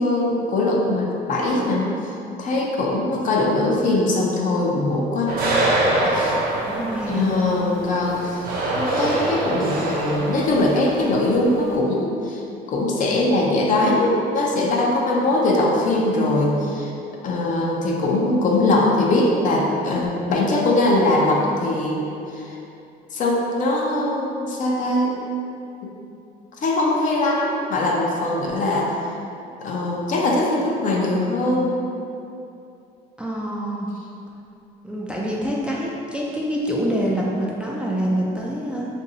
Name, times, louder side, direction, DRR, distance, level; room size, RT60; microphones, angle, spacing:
voice 1, 0.0-5.3 6.0-6.4 7.1-8.5 8.8-12.4 12.7-16.9 17.2-22.6 23.1-25.2 25.8-25.9 26.6-29.0 29.6-31.8, left 2 dB, 50° left, -2 dB, 0.6 m, -21 dB
sound 1, 5.3-11.8, right 1 dB, 60° right, 0.7 m, -24 dB
voice 2, 6.7-7.3 33.2-33.9 34.8-38.9, equal, 5° right, -4 dB, 0.3 m, -25 dB
2.6 x 2.6 x 4.0 m, 2.7 s
cardioid pair, 110°, 17 cm